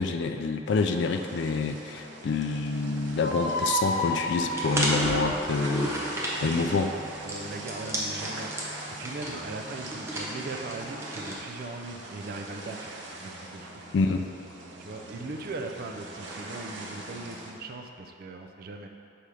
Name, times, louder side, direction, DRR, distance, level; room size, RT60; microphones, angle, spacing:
voice 1, 0.0-6.9 13.9-14.3, left 4 dB, 65° left, 5 dB, 0.3 m, -27 dB
sound 1, 0.6-17.5, right 2 dB, 70° right, 0.8 m, -42 dB
sound 2, 3.2-6.4, equal, 45° left, 0.9 m, -32 dB
sound 3, 4.5-11.3, right 1 dB, 15° right, 0.7 m, -33 dB
voice 2, 6.4-12.9 13.2-13.7 14.8-18.9, right 3 dB, 50° right, 3 dB, 0.4 m, -39 dB
5.2 x 4.3 x 4.8 m, 2.7 s
head